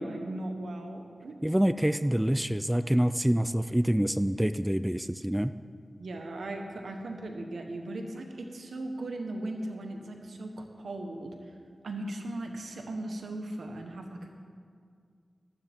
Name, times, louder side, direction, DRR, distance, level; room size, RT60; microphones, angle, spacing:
voice 1, 0.0-1.4 6.0-11.3 11.8-14.4, right 1 dB, 85° right, 4 dB, 1.3 m, -38 dB
voice 2, 1.4-5.5, equal, 10° right, 12 dB, 0.3 m, -26 dB
14.5 x 12.5 x 3.6 m, 2.2 s
wide cardioid pair, 65°, 0 cm